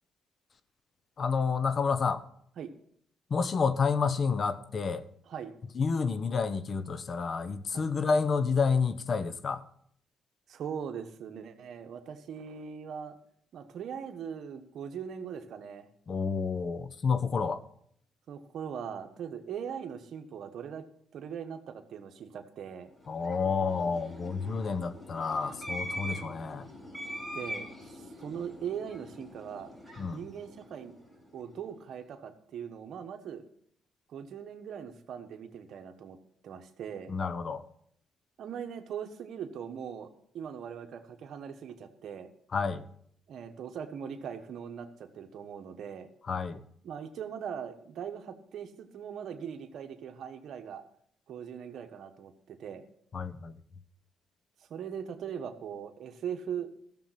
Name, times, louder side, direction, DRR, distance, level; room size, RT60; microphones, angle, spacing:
voice 1, 1.2-2.2 3.3-5.0 5.7-9.6 16.1-17.6 23.1-26.7 30.0-30.2 37.1-37.6 42.5-42.8 46.3-46.6 53.1-53.5, left 5 dB, 45° left, 13 dB, 0.9 m, -29 dB
voice 2, 10.5-13.2 13.5-15.9 18.3-20.8 21.1-22.9 27.3-29.7 30.1-31.0 31.3-33.5 34.1-36.2 36.4-37.1 38.4-42.3 43.3-46.1 46.8-50.8 51.3-52.8 54.7-56.7, right 8 dB, 70° right, 7 dB, 1.3 m, -40 dB
sound 1, 22.9-31.4, equal, 10° left, 5.0 m, -43 dB
14.0 x 7.2 x 5.9 m, 0.65 s
cardioid pair, 90°, 0 cm